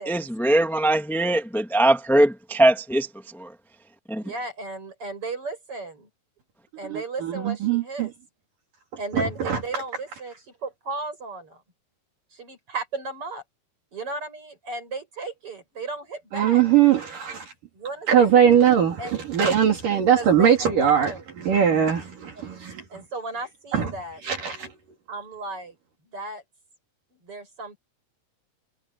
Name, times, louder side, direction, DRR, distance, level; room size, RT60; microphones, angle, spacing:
voice 1, 0.1-3.1 3.3-3.5 4.1-4.2, right 1 dB, ahead, 2.2 m, -21 dB
voice 2, 4.2-6.1 6.8-8.1 9.0-10.3 10.6-11.6 12.3-13.4 13.9-16.6 17.8-18.3 19.0-19.2 20.1-21.2 22.9-24.2 25.1-25.8 26.1-26.4 27.1-27.8, right 3 dB, 35° right, 8.7 m, -34 dB
voice 3, 6.9-8.1 9.1-9.6 16.3-17.5 18.1-22.8 23.7-23.9 24.2-24.7, right 8 dB, 60° right, 4.3 m, -21 dB
omnidirectional pair, 4.3 m